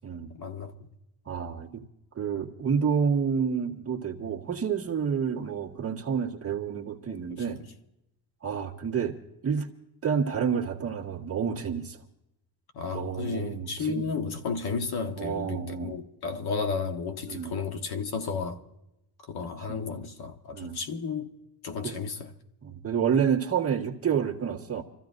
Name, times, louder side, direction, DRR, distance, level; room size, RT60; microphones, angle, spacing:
voice 1, 0.3-0.8 7.1-7.4 12.7-18.6 19.2-21.3 21.6-22.3, left 5 dB, 55° left, 1.2 m, -33 dB
voice 2, 1.3-1.8 2.2-7.6 8.4-9.2 9.4-9.7 10.0-12.0 12.9-14.1 15.2-16.0 17.3-17.6 19.7-19.8 20.5-20.8 21.8-22.0 22.6-24.8, right 7 dB, 30° right, 1.7 m, -29 dB
28.5 x 14.5 x 2.6 m
cardioid pair, 170°, 47 cm